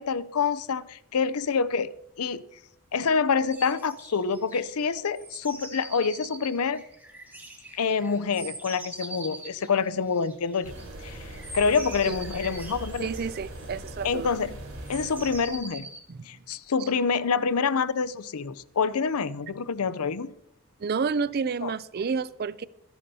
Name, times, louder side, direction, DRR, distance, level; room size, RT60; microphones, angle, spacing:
voice 1, 0.0-1.9 2.2-2.4 2.9-6.8 7.7-10.7 11.0-13.1 14.0-14.5 14.9-15.9 16.3-20.3 21.6-21.7, left 5 dB, 80° left, 16 dB, 0.6 m, -27 dB
sound 1, 3.5-4.7 5.2-10.9 11.3-14.3 14.8-16.0, right 1 dB, 10° right, 2.2 m, -43 dB
sound 2, 10.6-15.6, right 1 dB, 75° right, 4.7 m, -41 dB
voice 2, 13.0-14.4 16.1-16.3 16.8-16.9 20.8-22.7, right 5 dB, 45° right, 18 dB, 0.4 m, -30 dB
25.5 x 10.5 x 2.8 m, 0.80 s
head